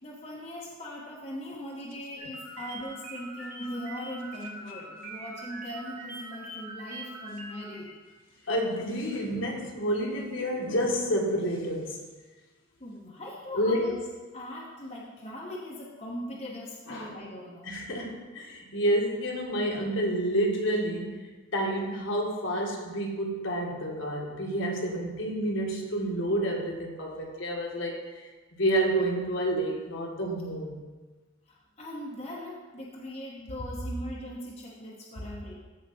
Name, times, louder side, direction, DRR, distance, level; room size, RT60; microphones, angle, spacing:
voice 1, 0.0-7.9 12.8-14.0 14.3-17.8 31.5-35.6, left 1 dB, 30° left, -4 dB, 1.1 m, -40 dB
sound 1, 2.2-7.9, right 2 dB, 35° right, 1.9 m, -43 dB
voice 2, 8.5-12.0 13.5-13.9 16.9-17.1 17.6-28.0 28.6-30.8, right 1 dB, 65° left, -1 dB, 1.7 m, -29 dB
14.0 x 5.0 x 4.2 m, 1.2 s
head